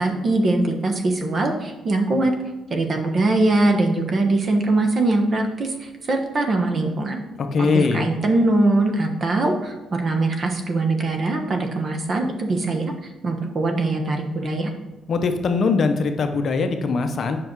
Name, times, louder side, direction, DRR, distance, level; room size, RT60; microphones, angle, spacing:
voice 1, 0.0-2.3 2.7-7.2 7.6-12.9 13.2-14.7, right 2 dB, 40° right, 4 dB, 1.1 m, -22 dB
voice 2, 7.4-8.1 15.1-17.4, left 4 dB, 50° left, 6 dB, 0.7 m, -21 dB
7.8 x 5.6 x 4.6 m, 1.0 s
cardioid pair, 125°, 0 cm